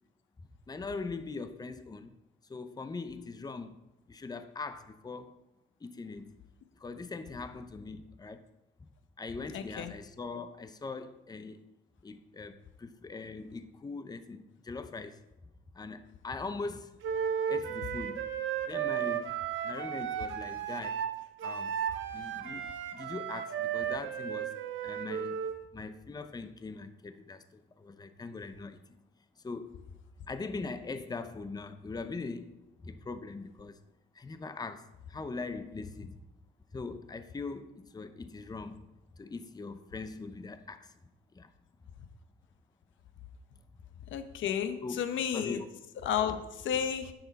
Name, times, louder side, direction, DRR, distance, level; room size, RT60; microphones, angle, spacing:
voice 1, 0.7-2.1 2.4-5.4 5.8-6.3 6.8-8.4 8.8-8.9 9.2-11.6 12.0-15.2 15.7-17.0 17.5-18.3 18.6-19.3 19.6-21.0 21.4-21.7 22.1-24.6 24.8-25.4 25.7-29.0 29.4-29.8 30.3-33.8 34.1-36.2 36.7-40.9 41.3-41.5 44.8-45.0 45.3-45.6 46.3-46.4, left 4 dB, 20° left, 0.7 m, -41 dB
voice 2, 9.5-9.9 44.1-45.6 46.0-47.1, left 8 dB, 75° left, 0.9 m, -32 dB
Wind instrument woodwind instrument, 17.0-25.6, right 8 dB, 80° right, 1.1 m, -34 dB
9.6 x 6.9 x 4.1 m
cardioid pair, 90°, 20 cm